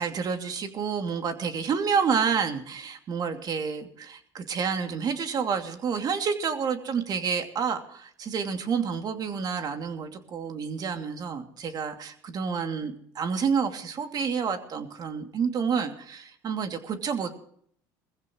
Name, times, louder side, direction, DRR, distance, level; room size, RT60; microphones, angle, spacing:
voice 1, 0.0-17.3, right 6 dB, 45° right, 5 dB, 2.7 m, -29 dB
22.0 x 15.5 x 3.1 m, 0.62 s
supercardioid pair, 95°, 9 cm